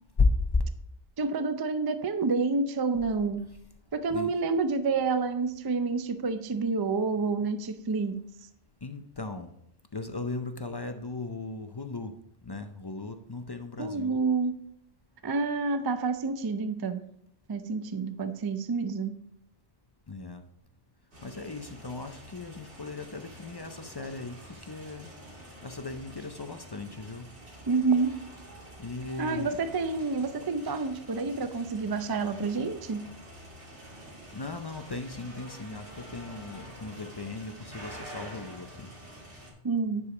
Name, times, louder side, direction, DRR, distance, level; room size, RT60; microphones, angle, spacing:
voice 1, 0.2-0.6 4.1-4.3 8.8-9.5 9.9-12.1 12.4-14.2 20.1-20.4 21.2-25.1 25.6-27.3 28.8-29.6 34.3-38.9, left 3 dB, 40° left, 6 dB, 0.3 m, -35 dB
voice 2, 1.2-3.4 3.9-8.2 13.8-14.5 15.2-17.0 17.5-19.1 27.7-28.2 29.2-33.0 39.6-40.0, right 4 dB, 35° right, 10 dB, 0.3 m, -28 dB
sound 1, 21.1-39.5, equal, 80° right, 2.7 m, -47 dB
9.7 x 4.9 x 4.9 m, 0.74 s
omnidirectional pair, 1.2 m